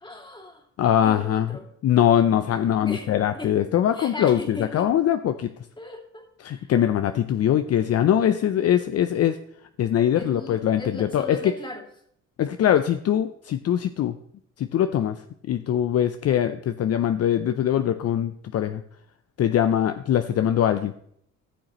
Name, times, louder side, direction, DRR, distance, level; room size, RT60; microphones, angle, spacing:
voice 1, 0.0-0.7 1.0-1.7 2.8-3.1 3.3-3.6 3.9-4.9 5.8-6.7 10.1-11.8, left 2 dB, 15° left, 0 dB, 2.4 m, -37 dB
voice 2, 0.8-1.5 1.8-5.5 6.4-9.4 9.8-11.5 12.4-14.2 14.6-15.2 15.5-18.8 19.4-20.9, left 10 dB, 55° left, 9 dB, 0.5 m, -22 dB
14.5 x 6.3 x 3.0 m, 0.68 s
cardioid pair, 90°, 30 cm